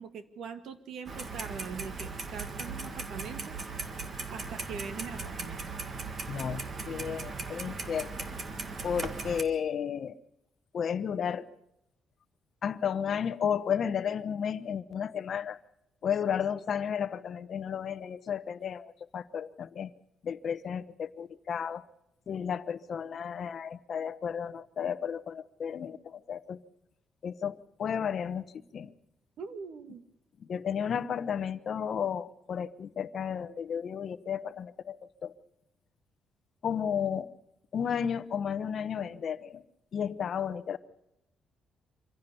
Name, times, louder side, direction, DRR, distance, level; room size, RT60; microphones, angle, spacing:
voice 1, 0.0-3.6 4.3-5.6 29.4-30.0, right 6 dB, 60° right, 9 dB, 1.8 m, -42 dB
Clock, 1.1-9.4, right 4 dB, 30° right, 1.7 m, -38 dB
voice 2, 6.3-8.3 8.8-10.2 10.7-11.5 12.6-15.6 16.0-19.9 20.2-21.8 22.3-26.6 27.2-28.9 30.4-35.3 36.6-37.3 37.7-39.6 39.9-40.8, left 8 dB, 45° left, 13 dB, 0.9 m, -33 dB
25.5 x 16.0 x 7.0 m, 0.83 s
cardioid pair, 165°, 0 cm